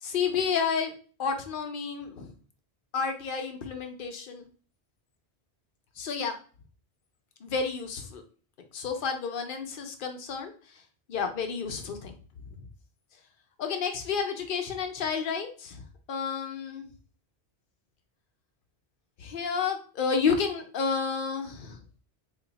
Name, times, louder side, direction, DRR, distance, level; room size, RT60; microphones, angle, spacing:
voice 1, 0.0-0.9 1.2-2.3 2.9-4.4 6.0-6.4 7.4-8.2 8.7-10.8 11.1-12.2 12.5-12.6 13.6-15.8 16.1-16.9 19.2-21.8, left 5 dB, 60° left, 5 dB, 0.7 m, -31 dB
2.9 x 2.3 x 3.9 m, 0.40 s
omnidirectional pair, 1.1 m